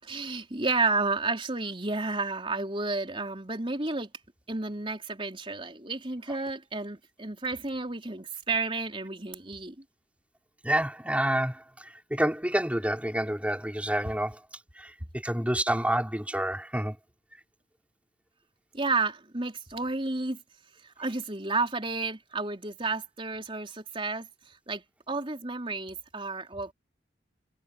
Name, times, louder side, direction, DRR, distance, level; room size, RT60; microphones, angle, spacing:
voice 1, 0.0-4.1 4.5-9.8 18.7-20.4 20.8-26.7, right 3 dB, 30° right, 3.9 m, -31 dB
voice 2, 10.6-14.4 14.8-17.0, right 1 dB, 5° right, 5.3 m, -28 dB
head